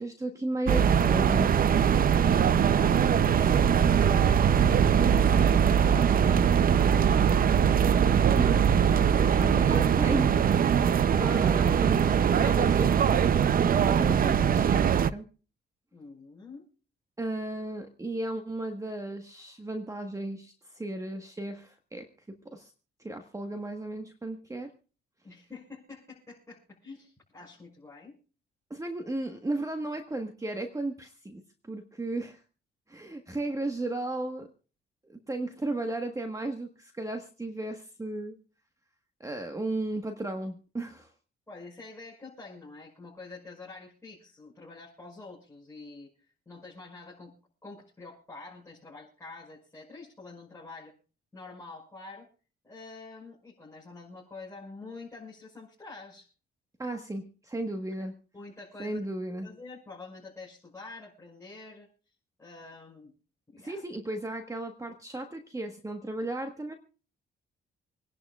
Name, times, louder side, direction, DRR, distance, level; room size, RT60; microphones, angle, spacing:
voice 1, 0.0-1.5 8.2-15.2 17.2-22.7 23.0-24.7 28.7-32.4 32.9-34.5 35.1-38.3 39.2-41.1 56.8-58.2 58.8-59.5 63.6-66.7, right 2 dB, 15° right, 5 dB, 1.4 m, -35 dB
sound 1, 0.7-15.1, right 8 dB, 45° right, 0.6 m, -22 dB
voice 2, 2.2-7.9 9.0-9.6 15.9-16.6 25.2-28.2 41.5-46.1 46.5-47.3 47.6-50.9 51.3-52.3 52.6-56.3 58.3-59.0 59.4-61.9 62.4-63.1 63.5-63.8, left 3 dB, 15° left, -5 dB, 5.8 m, -47 dB
27.0 x 11.0 x 2.4 m, 0.38 s
cardioid pair, 90°, 20 cm